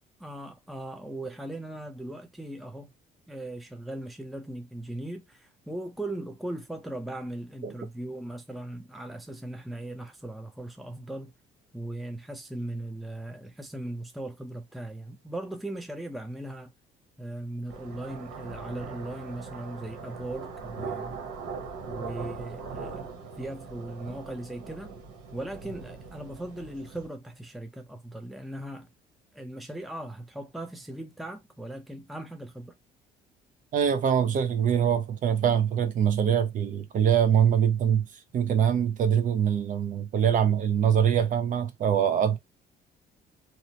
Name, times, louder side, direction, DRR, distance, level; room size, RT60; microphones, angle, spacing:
voice 1, 0.2-2.9 3.3-11.3 11.7-16.7 17.2-21.2 21.8-24.9 25.3-28.9 29.3-32.8, right 1 dB, ahead, 0.5 m, -38 dB
sound 1, 17.7-27.1, right 5 dB, 90° right, 1.0 m, -40 dB
voice 2, 33.7-38.1 38.3-42.4, right 8 dB, 50° right, 0.6 m, -23 dB
2.7 x 2.1 x 2.8 m
cardioid pair, 110°, 17 cm